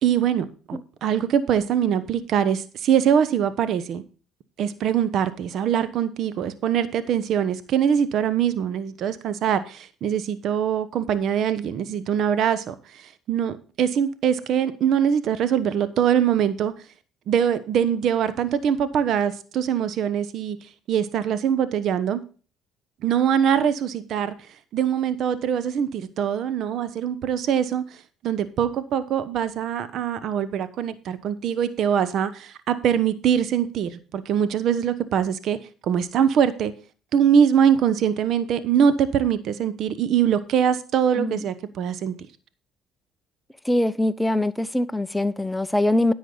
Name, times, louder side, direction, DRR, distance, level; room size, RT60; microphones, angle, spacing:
voice 1, 0.0-4.0 4.6-16.7 17.3-20.6 20.9-22.2 23.0-24.3 24.7-28.0 28.2-36.7 37.1-42.1, right 8 dB, 65° right, 1.0 m, -23 dB
voice 2, 43.6-46.1, left 1 dB, 5° left, 0.8 m, -23 dB
10.5 x 8.5 x 3.9 m
supercardioid pair, 85°, 0 cm